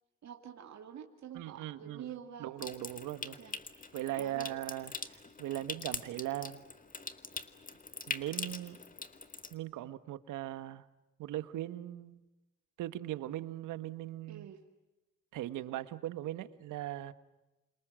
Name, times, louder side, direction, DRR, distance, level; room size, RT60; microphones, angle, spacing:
voice 1, 0.2-2.5 3.4-3.6 4.2-4.6 14.3-14.6, right 9 dB, 60° right, 2.4 m, -47 dB
voice 2, 1.3-2.1 2.4-3.4 3.9-6.6 8.1-8.8 9.5-10.8 11.2-12.2 12.8-14.5 15.3-17.1, right 14 dB, 90° right, 1.4 m, -39 dB
Water tap faucet / Sink (filling or washing) / Trickle dribble, 2.6-9.5, left 4 dB, 25° left, 2.1 m, -43 dB
29.5 x 26.5 x 7.6 m
cardioid pair, 90°, 30 cm